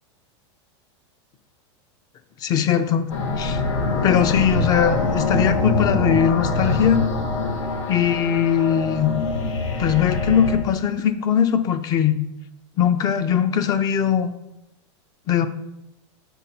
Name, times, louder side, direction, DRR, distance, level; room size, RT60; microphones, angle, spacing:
voice 1, 2.4-3.1 3.4-3.6 4.0-7.0 7.9-9.1 9.8-12.2 12.8-14.3 15.3-15.5, left 8 dB, 25° left, 12 dB, 0.5 m, -20 dB
sound 1, 3.1-10.6, left 2 dB, 85° left, 1.6 m, -24 dB
8.3 x 5.3 x 4.3 m, 0.90 s
supercardioid pair, 150°, 15 cm